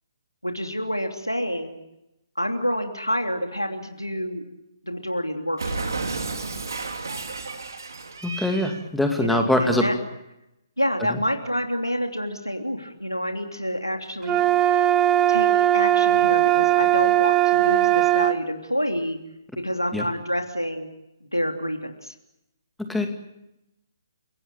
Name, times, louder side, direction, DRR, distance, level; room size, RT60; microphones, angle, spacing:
voice 1, 0.4-1.8 2.4-4.5 4.8-5.9 9.1-9.9 10.8-14.4 15.3-19.2 19.6-20.9 21.2-22.1, equal, 90° left, 4 dB, 3.0 m, -28 dB
Cat, 5.6-8.9, right 3 dB, 60° right, 3.0 m, -32 dB
voice 2, 8.2-9.8 11.1-11.2 19.9-20.1 22.9-23.1, left 1 dB, ahead, 4 dB, 2.5 m, -23 dB
sound 1, 14.2-18.4, right 13 dB, 15° right, 0.8 m, -19 dB
29.5 x 18.0 x 8.8 m, 0.90 s
figure-of-eight pair, 135°, 2 cm